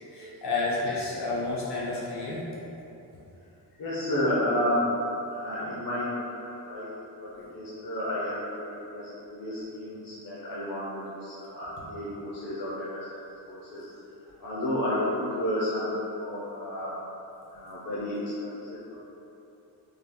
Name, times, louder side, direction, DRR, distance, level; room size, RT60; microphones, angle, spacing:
voice 1, 0.1-2.4, left 3 dB, 70° left, -6 dB, 1.2 m, -30 dB
voice 2, 3.8-4.9 5.3-6.9 7.2-13.2 13.5-13.9 14.4-16.9 17.5-18.9, left 1 dB, 50° left, -8 dB, 0.7 m, -31 dB
5.3 x 3.5 x 2.2 m, 2.9 s
wide cardioid pair, 165°, 43 cm